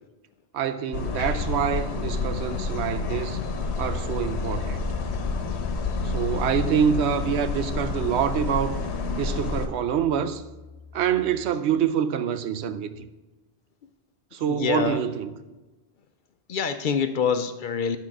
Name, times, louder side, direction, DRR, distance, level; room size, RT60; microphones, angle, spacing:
voice 1, 0.5-3.4 3.8-4.8 6.0-8.8 9.2-10.4 10.9-12.9 14.3-15.3, right 8 dB, 90° right, 0.9 m, -26 dB
sound 1, 0.9-9.7, left 4 dB, 80° left, 1.1 m, -29 dB
Piano, 3.8-11.5, left 3 dB, 15° right, 2.2 m, -42 dB
voice 2, 14.5-15.0 16.5-18.0, left 6 dB, 60° left, 0.6 m, -25 dB
11.0 x 4.1 x 6.0 m
omnidirectional pair, 1.1 m